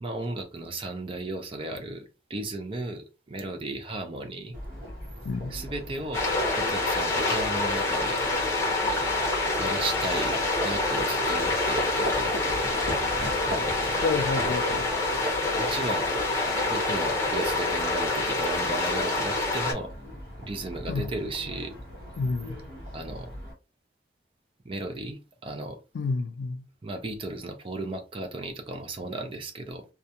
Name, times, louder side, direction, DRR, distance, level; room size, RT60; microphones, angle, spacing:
voice 1, 0.0-4.5 5.5-6.3 6.6-8.4 9.5-12.4 13.4-13.8 15.5-16.1 16.5-19.9 20.4-21.8 22.9-23.3 24.6-25.8 26.8-29.9, right 2 dB, 30° right, 0.4 m, -35 dB
Livestock farm animals working animals, 4.5-23.5, equal, 55° right, 1.0 m, -39 dB
sound 1, 6.1-19.7, left 2 dB, 15° left, 0.8 m, -26 dB
voice 2, 14.0-14.9 20.9-21.1 22.2-22.6 25.9-26.6, left 4 dB, 80° left, 0.3 m, -29 dB
2.4 x 2.2 x 2.8 m
head